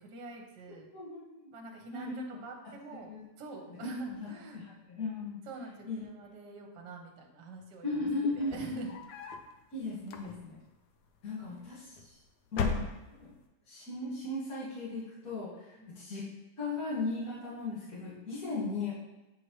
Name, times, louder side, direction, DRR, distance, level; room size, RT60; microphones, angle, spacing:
voice 1, 0.0-0.9 1.5-2.1 2.4-3.1 3.4-4.7 5.5-7.9 8.4-8.9 11.4-12.0 15.8-15.9, right 2 dB, 55° right, 1 dB, 1.5 m, -47 dB
voice 2, 0.9-1.4 1.9-2.2 3.1-3.2 3.7-5.4 5.9-6.0 7.8-8.8 9.7-10.6 11.2-12.2 12.5-13.3 13.7-15.5 15.9-16.3 16.6-18.9, left 3 dB, 45° left, -11 dB, 2.3 m, -37 dB
sound 1, 8.3-9.5 10.0-10.7 11.6-12.1 12.5-13.4, left 4 dB, 70° left, 0.9 m, -36 dB
8.6 x 4.6 x 3.1 m, 1.1 s
omnidirectional pair, 2.4 m